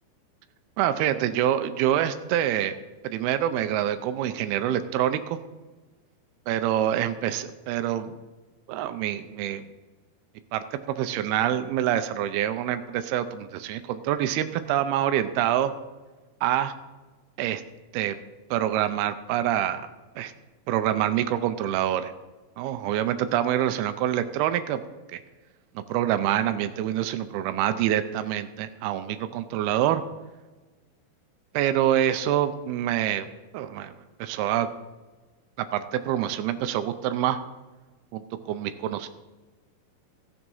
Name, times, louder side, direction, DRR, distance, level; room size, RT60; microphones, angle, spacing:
voice 1, 0.8-2.8 3.0-5.4 6.5-8.2 8.7-9.7 10.5-15.7 16.4-16.7 17.4-17.6 17.9-18.2 18.5-20.3 20.7-22.1 22.6-24.8 25.1-25.2 25.8-30.0 31.5-33.3 33.5-33.9 34.2-34.7 35.7-37.4 38.1-39.1, right 11 dB, 85° right, 10 dB, 2.6 m, -26 dB
14.0 x 7.2 x 5.4 m, 1.2 s
omnidirectional pair, 4.4 m